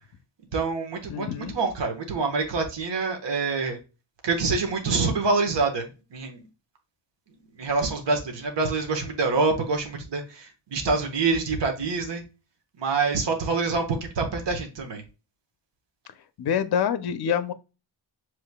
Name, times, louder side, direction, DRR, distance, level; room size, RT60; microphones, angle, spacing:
voice 1, 0.5-3.8 4.2-6.4 7.6-12.2 12.8-15.0, right 4 dB, 60° right, 1.2 m, -26 dB
voice 2, 1.1-1.5 16.4-17.5, left 8 dB, 50° left, 0.6 m, -26 dB
6.7 x 3.1 x 2.2 m
wide cardioid pair, 90°, 48 cm